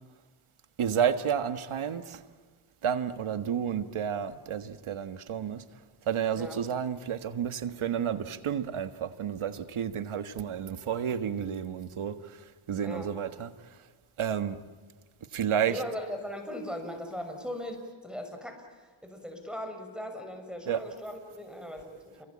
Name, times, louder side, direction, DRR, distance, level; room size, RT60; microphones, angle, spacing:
voice 1, 0.8-2.2 2.8-5.6 6.0-13.8 14.2-14.6 15.3-15.8 20.7-20.9, right 8 dB, 75° right, 1.7 m, -31 dB
voice 2, 15.7-18.6 19.0-22.3, left 1 dB, ahead, 6.5 m, -39 dB
29.0 x 23.0 x 8.8 m
cardioid pair, 65°, 50 cm